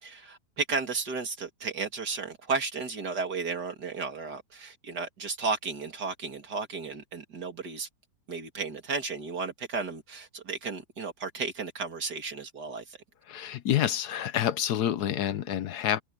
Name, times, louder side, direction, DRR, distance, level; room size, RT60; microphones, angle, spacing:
voice 1, 0.0-7.9 8.3-13.0, right 4 dB, 70° right, 3.1 m, -34 dB
voice 2, 13.3-16.0, left 10 dB, 70° left, 1.3 m, -28 dB
omnidirectional pair, 1.8 m